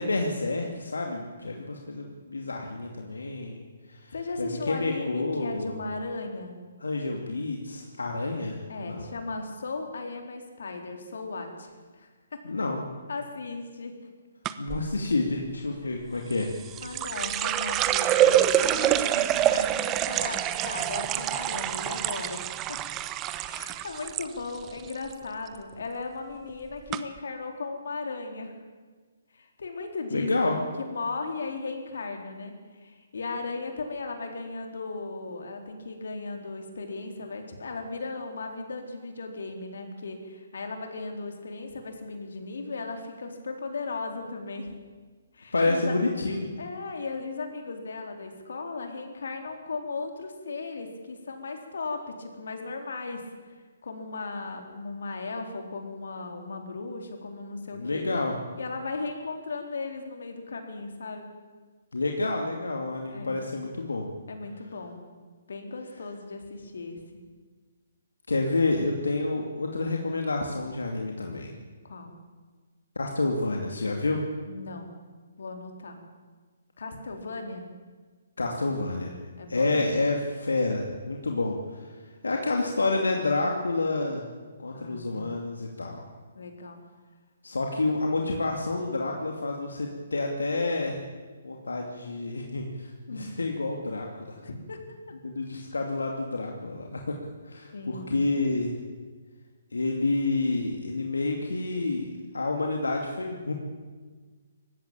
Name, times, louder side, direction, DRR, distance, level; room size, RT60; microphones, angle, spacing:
voice 1, 0.0-3.6 3.9-5.7 6.8-8.6 8.9-9.0 12.4-12.8 14.6-16.5 30.1-30.6 45.5-46.5 57.7-58.4 61.9-64.1 68.3-71.5 73.0-74.2 78.4-79.2 79.5-81.8 82.2-84.2 84.6-86.0 87.4-91.0 91.4-94.3 95.2-97.2 97.5-98.7 99.7-103.5, left 2 dB, 90° left, 1 dB, 2.6 m, -29 dB
voice 2, 4.1-6.6 8.7-12.4 13.1-13.9 15.8-16.0 16.8-22.8 23.5-28.5 29.3-44.7 45.3-46.0 46.6-53.2 53.8-58.2 58.6-61.3 63.1-63.4 64.3-65.0 65.5-67.2 71.8-72.2 74.5-74.9 75.4-76.0 76.8-77.6 79.4-79.8 84.7-85.3 86.4-86.8 93.1-93.3 94.4-94.8 97.7-98.1, left 3 dB, 75° left, 4 dB, 4.0 m, -36 dB
sound 1, 14.5-14.8 16.3-24.3 24.6-25.1 25.5-25.8 26.5-26.6 26.9-27.0, right 12 dB, 20° right, 0.9 m, -26 dB
19.0 x 15.5 x 8.9 m, 1.5 s
hypercardioid pair, 145°, 0 cm